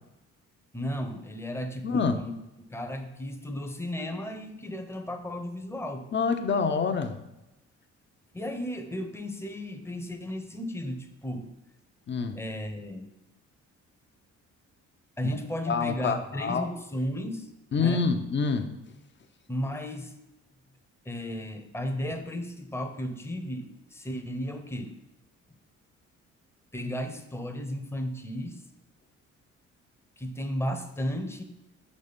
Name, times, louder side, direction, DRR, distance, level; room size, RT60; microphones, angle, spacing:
voice 1, 0.7-2.3 2.7-6.1 8.3-11.5 12.3-13.1 15.2-18.1 19.5-20.1 21.0-25.0 26.7-28.6 30.2-31.4, equal, 10° left, 6 dB, 0.8 m, -34 dB
voice 2, 1.8-2.2 6.1-7.1 12.1-12.4 15.7-16.7 17.7-18.7, left 5 dB, 40° left, 8 dB, 0.8 m, -26 dB
6.4 x 4.1 x 5.2 m, 0.93 s
cardioid pair, 90°, 30 cm